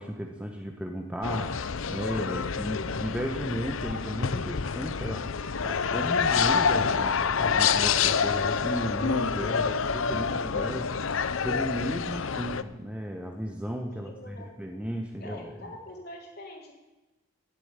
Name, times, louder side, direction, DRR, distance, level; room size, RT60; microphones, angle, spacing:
voice 1, 0.0-5.3 5.6-11.0 11.4-15.5, equal, 5° right, 3 dB, 1.2 m, -34 dB
sound 1, 1.2-12.6, left 6 dB, 65° left, 0.7 m, -27 dB
voice 2, 13.9-14.5 15.2-16.7, left 1 dB, 45° left, 0 dB, 3.7 m, -44 dB
17.0 x 8.8 x 9.0 m, 1.1 s
head